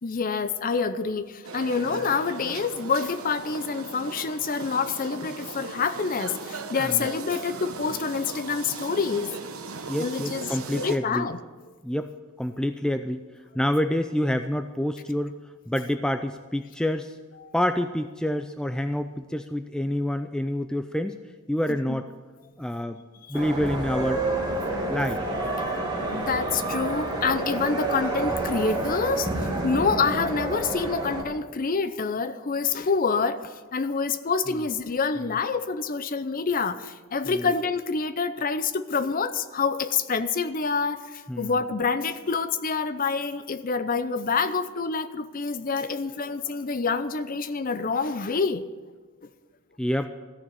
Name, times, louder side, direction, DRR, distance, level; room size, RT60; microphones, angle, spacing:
voice 1, 0.0-9.3 10.0-11.4 11.7-11.8 17.4-17.5 21.7-22.0 23.2-23.4 26.0-48.6 49.2-49.3, left 5 dB, 40° left, 12 dB, 0.6 m, -27 dB
sound 1, 1.4-11.0, right 4 dB, 70° right, 1.1 m, -38 dB
voice 2, 9.9-11.3 11.8-13.2 13.5-15.3 15.7-17.2 17.5-21.2 21.5-22.1 22.6-23.0 23.3-24.2 24.9-25.2 37.3-37.5 41.3-41.5 49.8-50.1, left 1 dB, 5° left, 8 dB, 0.3 m, -27 dB
sound 2, 23.3-31.2, right 2 dB, 20° right, 2.4 m, -29 dB
14.5 x 6.8 x 9.1 m, 1.4 s
head